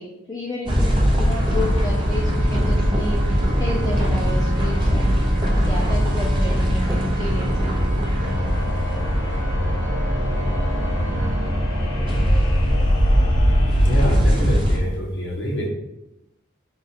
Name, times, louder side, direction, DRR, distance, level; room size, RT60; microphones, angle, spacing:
voice 1, 0.0-3.2 3.6-7.9, left 1 dB, 20° left, -5 dB, 0.5 m, -32 dB
sound 1, 0.7-14.8, equal, 20° right, 0.7 m, -20 dB
Organ, 1.2-12.2, right 3 dB, 40° right, 1.3 m, -35 dB
sound 2, 8.2-14.1, left 1 dB, 80° left, 1.0 m, -28 dB
voice 2, 13.8-15.7, equal, 55° left, -4 dB, 1.0 m, -25 dB
3.8 x 2.4 x 4.1 m, 0.91 s
head